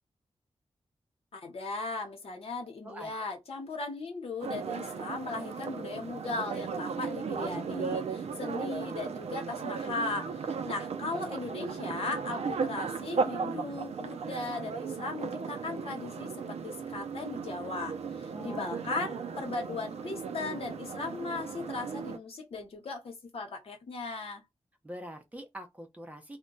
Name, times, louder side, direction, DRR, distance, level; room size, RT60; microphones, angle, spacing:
voice 1, 1.3-24.4, left 3 dB, 65° left, 0.9 m, -37 dB
sound 1, 4.4-22.2, right 5 dB, 85° right, 0.4 m, -36 dB
voice 2, 18.3-18.8 24.8-26.4, equal, 15° right, 0.6 m, -44 dB
2.2 x 2.2 x 3.7 m
wide cardioid pair, 170°, 11 cm